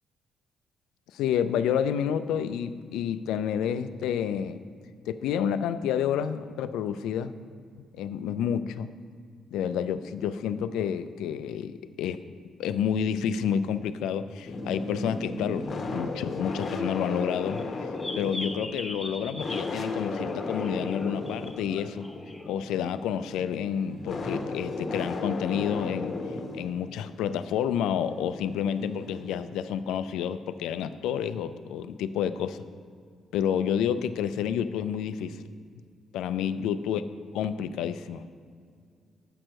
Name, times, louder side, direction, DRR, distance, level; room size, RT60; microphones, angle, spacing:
voice 1, 1.1-4.6 5.1-7.3 7.9-8.9 9.5-12.2 12.6-17.6 18.2-22.1 22.5-26.2 26.5-32.6 33.3-35.4 36.1-37.0 37.3-38.2, left 8 dB, 90° left, 12 dB, 0.3 m, -29 dB
sound 1, 14.5-29.4, left 3 dB, 50° left, 0.9 m, -35 dB
sound 2, 16.5-22.5, left 1 dB, 10° left, 0.9 m, -41 dB
7.6 x 4.5 x 6.3 m, 2.2 s
cardioid pair, 90°, 0 cm